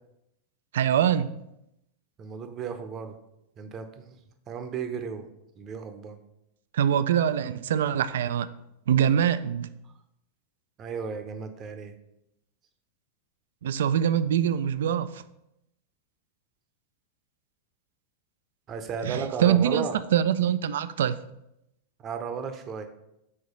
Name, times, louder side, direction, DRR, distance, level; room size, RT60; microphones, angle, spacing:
voice 1, 0.7-1.3 6.7-8.5 8.9-9.7 13.6-15.2 19.0-19.9 20.1-21.2, right 9 dB, 60° right, 0.3 m, -24 dB
voice 2, 2.2-3.2 3.6-4.2 4.5-5.3 5.6-6.2 10.8-11.9 18.7-20.0 22.0-22.9, right 6 dB, 30° right, 0.7 m, -34 dB
6.4 x 4.6 x 3.9 m
figure-of-eight pair, 90°, 0 cm